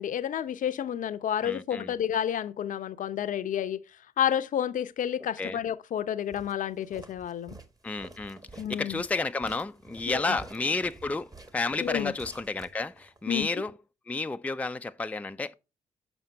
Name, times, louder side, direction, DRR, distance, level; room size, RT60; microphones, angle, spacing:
voice 1, 0.0-3.8 4.2-7.6 8.6-9.0 10.1-10.4 11.8-12.1 13.3-13.6, left 9 dB, 50° left, 0.7 m, -30 dB
voice 2, 1.4-1.9 5.4-5.6 7.8-8.4 8.7-13.7 14.1-15.5, left 3 dB, 10° left, 0.5 m, -31 dB
Walk footsteps, 6.3-13.2, right 2 dB, 20° right, 1.4 m, -49 dB
7.2 x 5.7 x 5.6 m
figure-of-eight pair, 40°, 17 cm